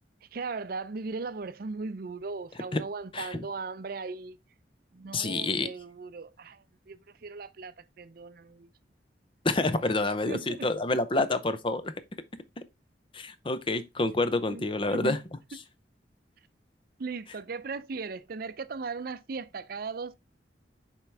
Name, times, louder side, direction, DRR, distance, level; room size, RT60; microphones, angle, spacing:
voice 1, 0.3-4.4 4.9-8.7 10.3-11.3 14.5-15.2 17.0-20.2, right 4 dB, 55° right, 0.5 m, -38 dB
voice 2, 3.1-3.4 5.1-5.7 9.4-11.9 13.1-15.2, left 2 dB, 30° left, 0.6 m, -28 dB
7.3 x 4.6 x 3.3 m
head